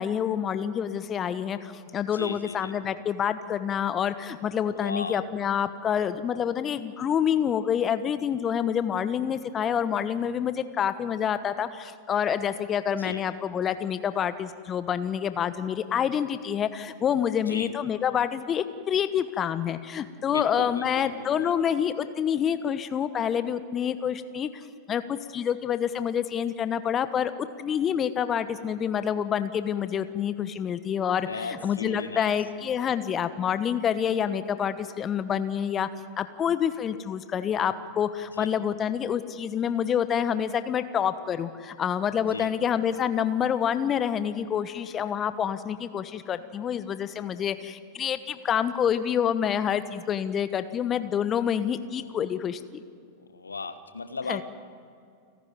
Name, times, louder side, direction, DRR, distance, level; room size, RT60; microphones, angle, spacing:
voice 1, 0.0-35.9 36.2-52.8 54.3-54.4, left 8 dB, 30° left, 12 dB, 1.0 m, -27 dB
voice 2, 2.1-2.7 4.7-5.2 13.0-13.2 17.5-17.7 20.3-21.5 31.3-32.3 38.4-38.5 42.3-42.5 53.3-54.4, left 4 dB, 80° left, 11 dB, 1.2 m, -36 dB
29.5 x 11.5 x 9.5 m, 2.4 s
figure-of-eight pair, 90°, 0 cm